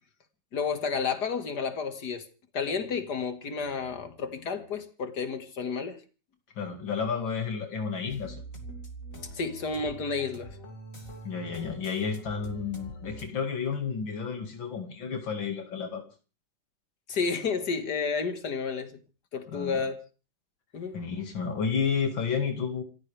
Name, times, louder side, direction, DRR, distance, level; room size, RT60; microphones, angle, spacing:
voice 1, 0.5-2.2 2.5-6.0 9.2-10.6 17.1-18.9 19.3-20.0 20.7-21.0, left 5 dB, 60° left, 2.5 m, -31 dB
voice 2, 6.6-8.4 11.2-16.0 19.5-19.9 20.9-22.8, left 6 dB, 90° left, 2.9 m, -31 dB
sound 1, 8.1-13.3, right 1 dB, 45° left, 3.2 m, -44 dB
28.0 x 14.5 x 3.5 m
omnidirectional pair, 2.0 m